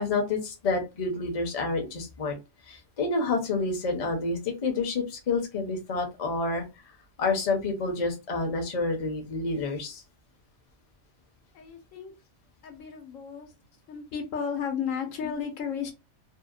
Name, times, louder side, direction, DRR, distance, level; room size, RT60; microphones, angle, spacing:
voice 1, 0.0-2.4 2.6-6.6 7.2-10.0 15.2-15.4, left 3 dB, 40° left, 2 dB, 0.6 m, -29 dB
voice 2, 11.5-12.1 12.6-13.5 13.9-15.9, left 7 dB, 80° left, 5 dB, 1.1 m, -33 dB
2.7 x 2.0 x 2.4 m, 0.25 s
omnidirectional pair, 1.4 m